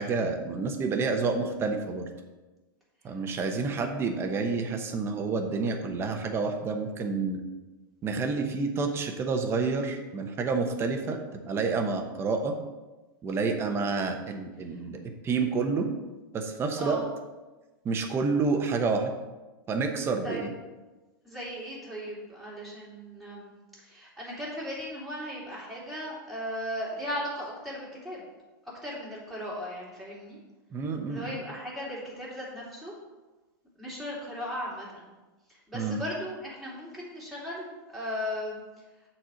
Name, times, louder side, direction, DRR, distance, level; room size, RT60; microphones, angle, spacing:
voice 1, 0.0-2.0 3.0-7.4 8.0-11.2 11.5-12.5 13.2-15.9 16.3-17.0 17.8-19.1 19.7-20.5 30.7-31.4 35.7-36.0, right 4 dB, 20° right, 4 dB, 0.9 m, -29 dB
voice 2, 20.0-20.4 21.2-28.2 28.6-30.4 31.1-32.9 33.8-35.1 35.5-38.8, equal, ahead, -7 dB, 2.9 m, -37 dB
7.7 x 4.3 x 6.3 m, 1.2 s
supercardioid pair, 140°, 12 cm